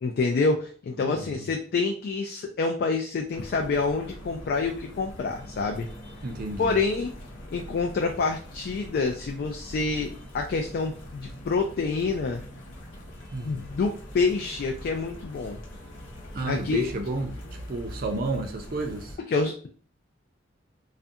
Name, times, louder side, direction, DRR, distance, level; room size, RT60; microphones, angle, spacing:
voice 1, 0.0-5.9 6.6-7.1 7.5-12.4 13.4-15.6 16.4-16.9 19.3-19.7, left 4 dB, 55° left, 0.3 m, -27 dB
voice 2, 1.0-1.5 6.2-6.8 13.3-13.6 16.3-17.4 17.7-19.2, right 2 dB, 50° right, 0.5 m, -31 dB
sound 1, 3.3-19.2, equal, 75° left, 0.7 m, -42 dB
2.4 x 2.2 x 2.6 m
head